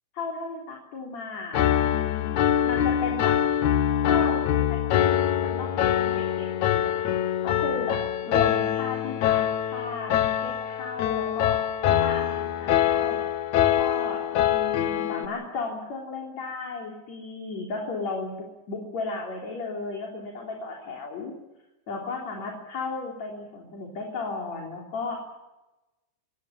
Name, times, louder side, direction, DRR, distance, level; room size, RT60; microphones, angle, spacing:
voice 1, 0.1-2.3 2.6-3.4 4.0-10.1 10.4-11.6 12.0-13.2 13.6-21.3 21.9-25.2, left 3 dB, 40° left, 0 dB, 4.5 m, -35 dB
Piano, 1.5-15.3, left 11 dB, 85° left, 1.6 m, -24 dB
25.5 x 19.0 x 7.4 m, 1.0 s
omnidirectional pair, 5.1 m